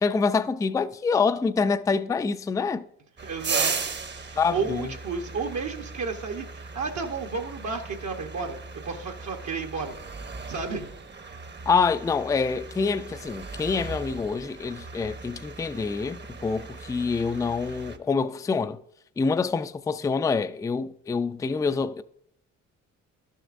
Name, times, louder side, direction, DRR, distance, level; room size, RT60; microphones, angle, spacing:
voice 1, 0.0-2.8 4.4-4.9 11.7-18.8 19.2-22.0, left 5 dB, 10° left, 0.3 m, -26 dB
sound 1, 3.2-18.0, right 4 dB, 35° right, 0.8 m, -37 dB
voice 2, 3.2-3.7 4.2-8.6 8.8-10.0 10.5-10.9, right 4 dB, 60° right, 0.9 m, -32 dB
12.0 x 6.5 x 2.5 m
supercardioid pair, 60°, 33 cm